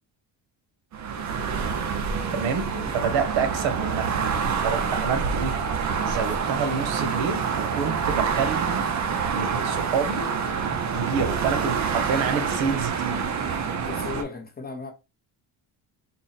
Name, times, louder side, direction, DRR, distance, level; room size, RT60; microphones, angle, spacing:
sound 1, 0.9-14.2, right 6 dB, 40° right, 0.5 m, -27 dB
voice 1, 2.3-4.1 4.6-5.5 6.1-8.9 9.3-10.3 10.9-13.3, right 6 dB, 85° right, 1.0 m, -28 dB
voice 2, 13.8-14.9, left 4 dB, 20° left, 0.5 m, -36 dB
3.9 x 2.0 x 3.9 m
cardioid pair, 170°, 45 cm